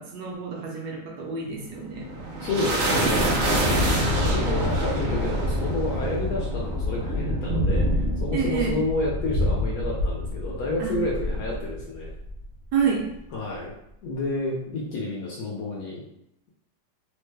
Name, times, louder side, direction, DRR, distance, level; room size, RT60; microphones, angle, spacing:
voice 1, 0.0-2.1 8.3-8.8 10.8-11.0 12.7-13.1, right 6 dB, 70° right, -1 dB, 1.1 m, -28 dB
sound 1, 1.7-12.4, equal, 85° right, 0.6 m, -26 dB
voice 2, 2.4-3.3 4.3-12.1 13.3-13.7 14.0-16.0, left 2 dB, 70° left, -3 dB, 0.9 m, -30 dB
3.1 x 2.1 x 3.2 m, 0.79 s
omnidirectional pair, 2.0 m